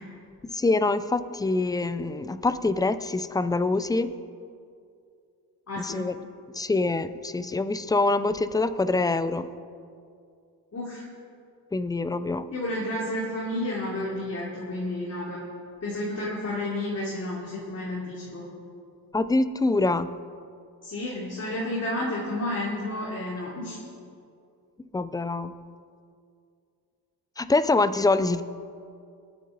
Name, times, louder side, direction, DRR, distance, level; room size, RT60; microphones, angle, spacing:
voice 1, 0.5-4.1 5.8-6.3 6.5-9.5 11.7-12.5 19.1-20.1 24.9-25.6 27.4-28.4, left 3 dB, 10° left, 13 dB, 0.5 m, -25 dB
voice 2, 5.7-6.1 10.7-11.1 12.5-15.4 15.8-18.4 20.8-23.8, left 1 dB, 40° left, -6 dB, 3.0 m, -31 dB
26.5 x 9.4 x 4.0 m, 2.4 s
cardioid pair, 125°, 40 cm